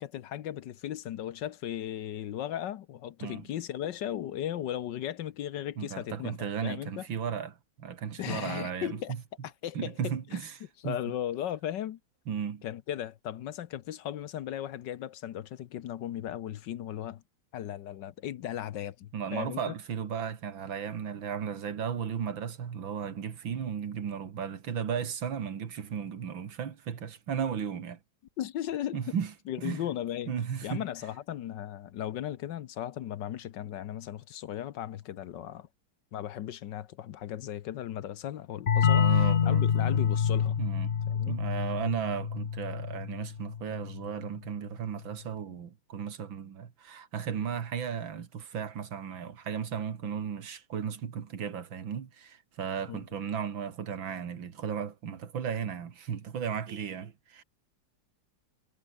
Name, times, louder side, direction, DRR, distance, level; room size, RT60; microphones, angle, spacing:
voice 1, 0.0-7.1 8.2-9.1 9.4-10.4 10.8-12.0 12.6-17.2 17.5-19.7 28.4-29.2 29.5-30.3 30.6-35.7 36.1-40.6 41.1-41.4 52.9-53.0, left 11 dB, 70° left, 1.4 m, -36 dB
voice 2, 5.8-9.0 9.7-10.5 10.8-11.0 12.3-12.6 19.1-28.0 28.9-29.3 29.6-29.8 30.3-30.8 38.9-40.0 40.6-40.9 41.3-57.4, right 7 dB, 75° right, 2.6 m, -35 dB
sound 1, 38.7-44.1, left 7 dB, 45° left, 0.8 m, -27 dB
omnidirectional pair, 2.1 m